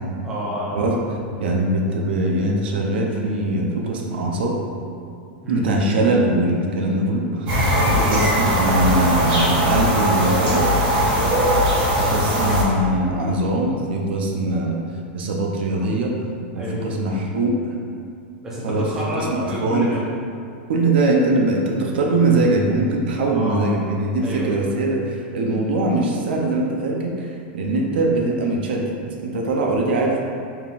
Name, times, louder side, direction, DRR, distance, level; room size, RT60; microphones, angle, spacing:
voice 1, 0.2-0.8 5.4-5.6 7.7-8.0 11.1-11.4 16.5-16.8 18.4-20.0 23.1-23.6 24.2-24.6, equal, 10° right, -7 dB, 0.6 m, -29 dB
voice 2, 1.4-4.5 5.5-10.7 12.0-14.8 15.1-16.1 16.6-17.6 18.6-18.9 19.3-19.9 20.7-30.2, right 2 dB, 75° right, 0 dB, 0.6 m, -21 dB
sound 1, 7.5-12.6, equal, 45° right, 1.5 m, -19 dB
4.2 x 3.7 x 2.4 m, 2.4 s
supercardioid pair, 170°, 6 cm